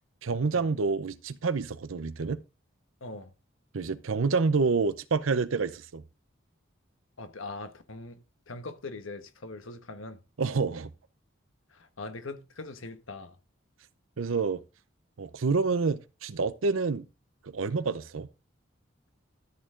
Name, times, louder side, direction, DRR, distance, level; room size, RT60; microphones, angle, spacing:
voice 1, 0.2-2.4 3.7-6.0 10.4-10.9 14.2-14.6 15.2-17.1 17.4-18.3, right 4 dB, 85° right, 0.6 m, -28 dB
voice 2, 3.0-3.3 7.2-8.2 8.5-10.2 11.7-13.4, left 3 dB, 85° left, 1.3 m, -41 dB
13.0 x 6.6 x 3.8 m
head